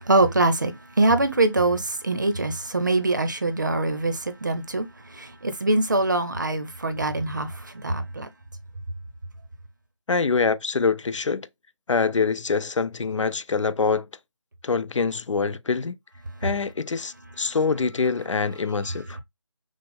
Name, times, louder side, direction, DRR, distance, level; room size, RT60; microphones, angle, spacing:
voice 1, 0.1-4.9 5.1-7.5 7.8-8.3, right 2 dB, 40° right, 0.7 m, -23 dB
voice 2, 10.1-11.5 11.9-14.1 14.6-16.0 16.4-19.2, left 4 dB, 80° left, 0.5 m, -25 dB
6.1 x 2.1 x 3.5 m
figure-of-eight pair, 175°, 16 cm